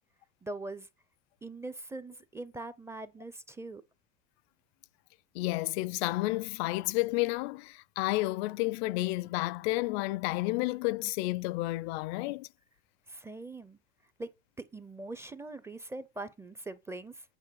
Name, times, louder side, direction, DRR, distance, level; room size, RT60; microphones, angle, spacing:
voice 1, 0.4-0.9 1.4-3.8 13.1-13.8 14.2-14.3 14.6-17.2, right 2 dB, 10° right, 0.4 m, -42 dB
voice 2, 5.3-12.5, left 20 dB, 80° left, 0.5 m, -31 dB
9.0 x 4.5 x 5.6 m
cardioid pair, 145°, 31 cm